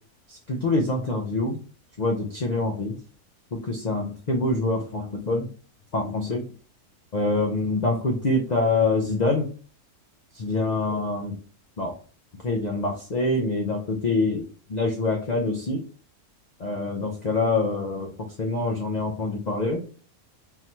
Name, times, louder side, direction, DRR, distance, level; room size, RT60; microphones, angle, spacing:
voice 1, 0.3-1.6 2.0-3.0 3.5-5.5 5.9-6.4 7.1-9.5 10.3-11.3 11.8-12.0 12.4-15.8 16.6-19.8, left 2 dB, 75° left, 1 dB, 0.4 m, -25 dB
3.9 x 2.8 x 3.0 m, 0.38 s
omnidirectional pair, 1.6 m